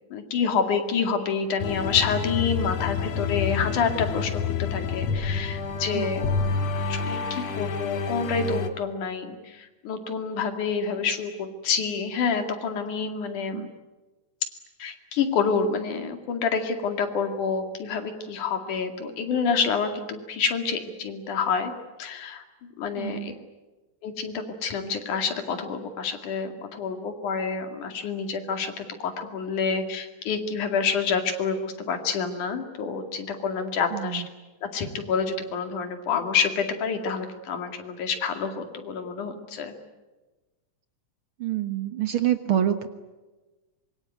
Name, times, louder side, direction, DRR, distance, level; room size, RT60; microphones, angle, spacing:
voice 1, 0.1-6.4 6.9-13.7 14.8-21.7 22.0-23.3 24.0-34.2 34.7-39.7, left 5 dB, 85° left, 6 dB, 3.8 m, -28 dB
sound 1, 1.6-8.7, left 5 dB, 65° left, 2.6 m, -28 dB
voice 2, 23.0-23.4 33.9-34.3 41.4-42.9, right 11 dB, 55° right, 9 dB, 1.8 m, -27 dB
25.5 x 23.0 x 9.4 m, 1.2 s
omnidirectional pair, 3.4 m